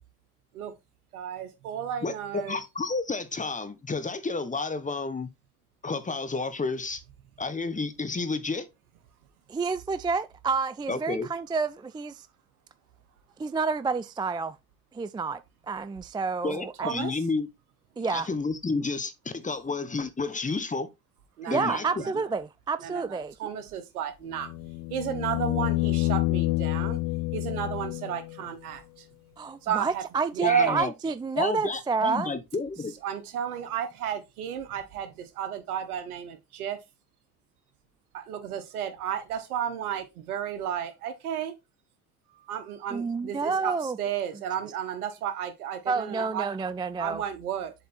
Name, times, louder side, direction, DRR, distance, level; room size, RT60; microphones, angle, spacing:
voice 1, 1.1-2.6 16.8-17.1 21.4-22.1 22.8-24.5 24.9-27.0 27.3-29.0 29.6-30.0 30.3-30.8 33.0-36.8 38.1-41.5 42.5-43.7 44.0-46.5 47.0-47.7, right 9 dB, 90° right, 1.2 m, -32 dB
voice 2, 2.0-5.3 5.8-7.0 7.4-8.7 10.9-11.3 16.4-17.5 18.1-20.9 21.5-22.0 30.4-30.9 31.3-32.9, left 3 dB, 15° left, 1.2 m, -31 dB
voice 3, 9.5-12.3 13.4-14.6 14.9-15.4 15.7-16.9 18.0-18.3 21.5-23.5 29.4-32.3 42.9-44.0 45.9-47.2, right 4 dB, 10° right, 0.4 m, -29 dB
sound 1, 24.3-28.4 30.8-30.9, left 21 dB, 55° left, 0.5 m, -28 dB
7.4 x 4.1 x 4.3 m
hypercardioid pair, 65°, 43 cm